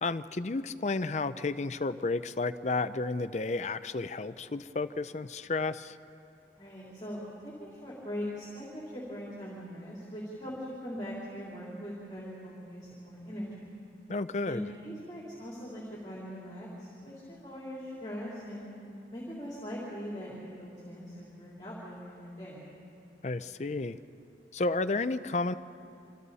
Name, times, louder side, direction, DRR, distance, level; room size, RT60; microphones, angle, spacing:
voice 1, 0.0-6.0 14.1-14.6 23.2-24.0 24.5-25.5, left 3 dB, 40° left, 11 dB, 0.5 m, -32 dB
voice 2, 6.6-10.5 10.8-13.7 14.4-18.7 19.1-22.8, equal, 25° left, -5 dB, 3.6 m, -41 dB
27.0 x 26.0 x 4.2 m, 2.7 s
head